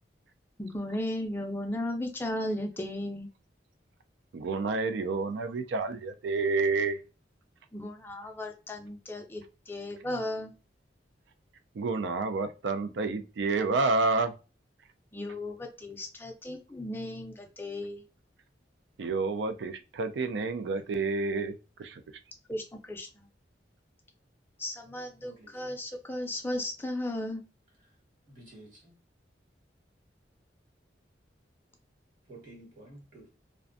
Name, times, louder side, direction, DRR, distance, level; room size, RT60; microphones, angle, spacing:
voice 1, 0.6-3.3 7.7-10.5 15.1-18.0 22.5-23.3 24.6-27.4, left 1 dB, 10° left, 0.4 m, -35 dB
voice 2, 4.3-7.0 11.7-14.3 19.0-21.5 21.8-22.0, right 3 dB, 80° right, 0.4 m, -29 dB
voice 3, 25.2-25.7 28.3-29.0 32.3-33.3, right 2 dB, 50° right, 1.2 m, -51 dB
2.5 x 2.2 x 2.5 m
head